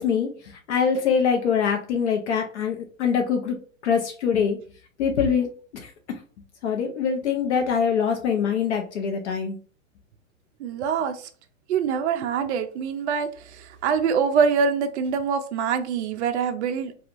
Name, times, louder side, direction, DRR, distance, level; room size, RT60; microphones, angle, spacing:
voice 1, 0.0-3.6 3.8-4.6 5.0-5.9 6.6-9.6, left 6 dB, 55° left, 3 dB, 0.6 m, -24 dB
voice 2, 10.6-11.2 11.7-13.3 13.6-16.9, right 6 dB, 55° right, 7 dB, 0.5 m, -24 dB
2.8 x 2.3 x 2.4 m, 0.41 s
hypercardioid pair, 135°, 42 cm